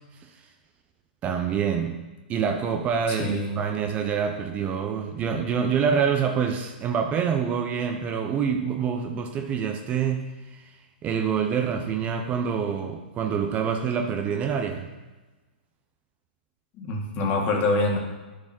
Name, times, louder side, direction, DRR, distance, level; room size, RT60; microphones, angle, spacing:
voice 1, 1.2-2.0 2.3-10.7 11.0-14.9, right 7 dB, 25° right, 4 dB, 0.9 m, -26 dB
voice 2, 3.1-3.5 16.8-18.0, left 2 dB, 35° left, 1 dB, 2.1 m, -25 dB
11.0 x 6.4 x 4.5 m, 1.2 s
hypercardioid pair, 130°, 5 cm